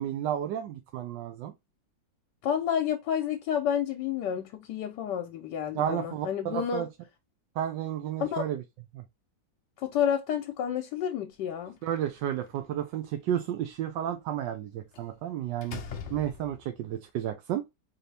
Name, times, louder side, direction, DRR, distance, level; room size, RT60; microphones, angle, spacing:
voice 1, 0.0-1.5 5.7-6.9 7.6-8.6 8.9-9.0 11.8-15.8 16.1-17.6, right 10 dB, 80° right, 1.3 m, -32 dB
voice 2, 2.4-6.9 8.2-8.4 9.8-11.8, left 9 dB, 80° left, 1.3 m, -30 dB
Slam, 11.8-12.8 14.9-15.2 15.6-16.8, left 7 dB, 60° left, 0.7 m, -42 dB
4.2 x 2.7 x 3.3 m
omnidirectional pair, 1.9 m